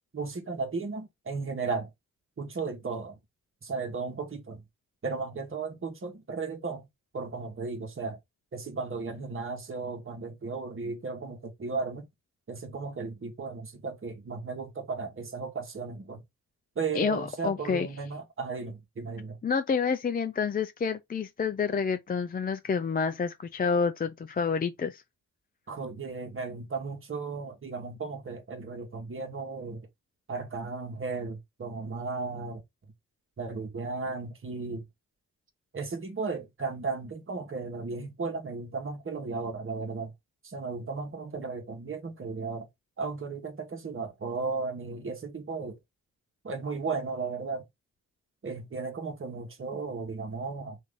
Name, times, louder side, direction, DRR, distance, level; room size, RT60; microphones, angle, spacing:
voice 1, 0.1-1.9 2.4-3.2 3.6-4.6 5.0-6.9 7.1-8.2 8.5-12.1 12.5-16.2 16.8-19.4 25.7-29.9 30.3-32.6 33.4-34.8 35.7-40.1 40.4-42.7 43.0-45.8 46.4-47.6 48.4-50.8, right 4 dB, 40° right, 1.2 m, -35 dB
voice 2, 16.9-17.9 19.4-25.0, left 5 dB, 25° left, 0.4 m, -28 dB
3.0 x 2.6 x 3.6 m
supercardioid pair, 45°, 34 cm